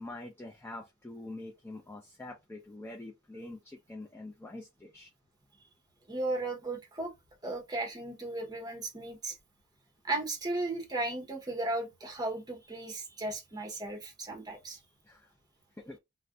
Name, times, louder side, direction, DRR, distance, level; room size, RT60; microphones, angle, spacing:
voice 1, 0.0-5.1 15.1-15.3 15.8-16.0, left 2 dB, 10° left, 0.4 m, -45 dB
voice 2, 6.1-7.1 7.4-9.4 10.0-14.8, right 2 dB, 20° right, 0.8 m, -35 dB
2.5 x 2.1 x 3.6 m
head